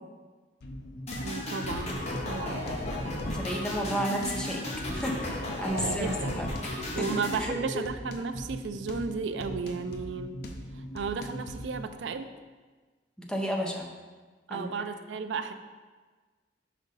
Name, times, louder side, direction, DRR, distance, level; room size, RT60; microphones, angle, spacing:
sound 1, 0.6-12.0, left 1 dB, 60° left, 0.6 m, -40 dB
sound 2, 1.1-7.4, left 1 dB, 40° left, 0.9 m, -35 dB
voice 1, 1.2-2.0 2.2-2.7 5.7-6.4 6.9-10.4 10.9-12.3 14.5-15.5, right 5 dB, 75° right, 9 dB, 0.4 m, -34 dB
voice 2, 3.3-4.6 4.9-6.5 7.0-7.1 7.3-7.6 13.2-13.9 14.5-14.7, equal, 5° left, 0 dB, 0.6 m, -32 dB
5.3 x 5.0 x 4.0 m, 1.4 s
head